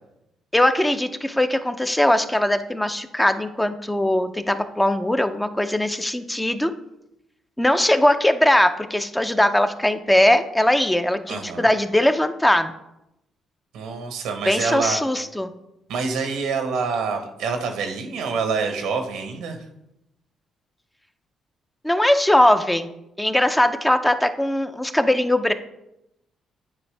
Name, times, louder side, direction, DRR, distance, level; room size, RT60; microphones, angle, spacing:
voice 1, 0.5-6.7 7.6-12.7 14.5-15.5 21.8-22.9 23.2-25.5, left 1 dB, 10° left, 8 dB, 0.5 m, -20 dB
voice 2, 11.3-11.7 13.7-15.0 15.9-19.6, right 5 dB, 90° right, 5 dB, 1.1 m, -26 dB
9.6 x 4.5 x 3.3 m, 0.85 s
cardioid pair, 90°, 0 cm